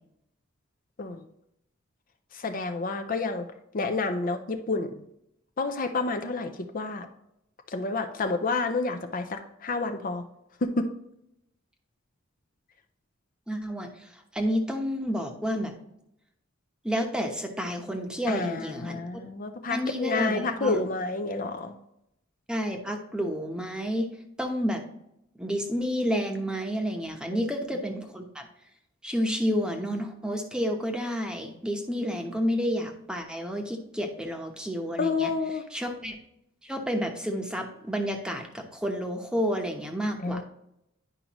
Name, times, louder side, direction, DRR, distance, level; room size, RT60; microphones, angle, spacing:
voice 1, 2.3-3.5 3.7-4.9 5.6-7.1 7.7-10.2 10.6-10.9 18.3-21.7 27.3-27.4 35.0-35.6 40.2-40.4, left 3 dB, 45° left, 6 dB, 0.6 m, -29 dB
voice 2, 13.5-15.7 16.8-19.0 19.7-20.8 22.5-24.1 24.4-24.8 25.4-28.5 29.0-35.3 35.7-36.2 36.6-40.4, equal, 5° right, 3 dB, 0.9 m, -30 dB
10.0 x 5.1 x 3.0 m, 0.79 s
head